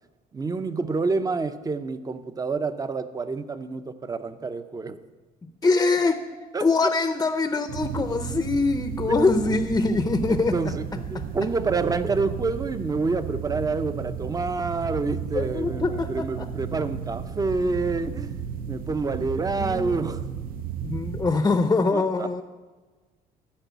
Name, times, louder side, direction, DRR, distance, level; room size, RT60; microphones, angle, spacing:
voice 1, 0.3-5.0 6.5-6.9 9.1-9.6 9.9-10.0 10.3-10.8 11.1-18.4 18.7-20.2 21.9-22.3, right 3 dB, 20° right, 11 dB, 0.7 m, -28 dB
voice 2, 5.6-6.2 6.6-10.6 15.3-16.4 19.6-20.0 20.8-22.4, left 3 dB, 20° left, 9 dB, 0.7 m, -23 dB
sound 1, 7.7-21.4, right 8 dB, 60° right, 0.7 m, -34 dB
13.0 x 5.4 x 8.2 m, 1.3 s
cardioid pair, 110°, 17 cm